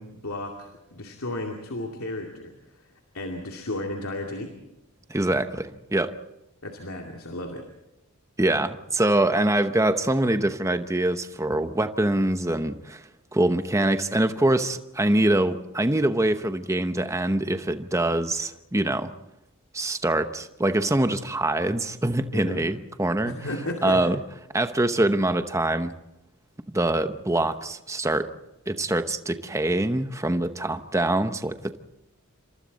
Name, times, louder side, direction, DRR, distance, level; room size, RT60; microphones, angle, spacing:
voice 1, 0.0-2.9 3.1-4.5 6.6-7.7 22.3-22.7 23.2-24.0, left 1 dB, 75° left, 1 dB, 2.5 m, -34 dB
voice 2, 5.1-6.2 8.4-13.0 13.3-19.1 19.7-23.3 23.8-24.2 24.5-25.9 26.7-28.3 28.7-31.8, right 1 dB, 15° right, 9 dB, 0.9 m, -24 dB
28.0 x 26.0 x 4.1 m, 0.90 s
head